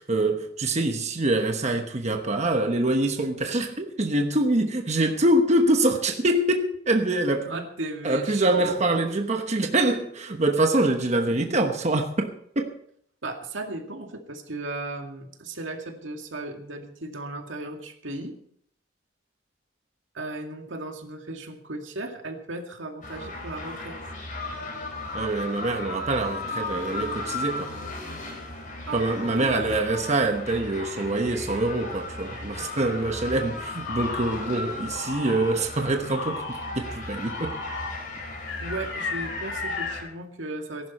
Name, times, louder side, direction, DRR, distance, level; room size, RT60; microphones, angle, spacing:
voice 1, 0.0-7.6 8.0-12.7 25.1-27.7 28.9-37.6, right 2 dB, 35° right, 1.1 m, -25 dB
voice 2, 7.4-9.0 13.2-18.3 20.1-24.0 28.9-29.9 38.6-40.9, right 2 dB, 80° right, 2.1 m, -36 dB
sound 1, 23.0-40.0, left 2 dB, 45° left, 4.2 m, -36 dB
sound 2, 33.9-34.4 34.9-35.5 36.1-36.7 37.3-37.9 38.5-40.0, left 3 dB, 75° left, 3.9 m, -34 dB
19.0 x 11.5 x 4.2 m
head